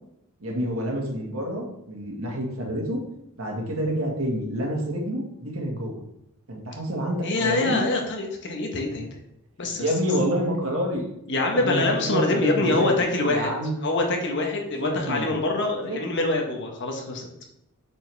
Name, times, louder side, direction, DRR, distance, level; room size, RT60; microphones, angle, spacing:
voice 1, 0.4-3.0 3.4-6.0 6.5-7.9 9.8-11.1 11.5-13.8 14.8-15.3 15.8-16.0, equal, 70° right, 0 dB, 1.7 m, -28 dB
voice 2, 7.2-9.2 9.6-9.9 11.3-13.5 13.8-17.5, left 2 dB, 55° left, 2 dB, 1.3 m, -25 dB
8.4 x 4.6 x 3.5 m, 0.79 s
head